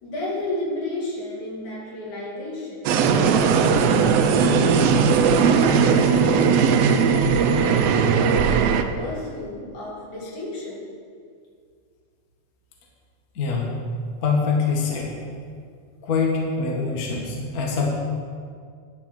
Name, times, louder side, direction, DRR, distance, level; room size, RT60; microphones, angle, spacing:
voice 1, 0.0-10.8, left 1 dB, 75° left, -5 dB, 4.0 m, -33 dB
sound 1, 2.9-8.8, right 6 dB, 75° right, 1.6 m, -18 dB
voice 2, 13.3-13.8 14.2-15.2 16.0-17.9, left 4 dB, 40° left, -2 dB, 1.5 m, -24 dB
10.5 x 7.2 x 6.4 m, 2.2 s
omnidirectional pair, 3.4 m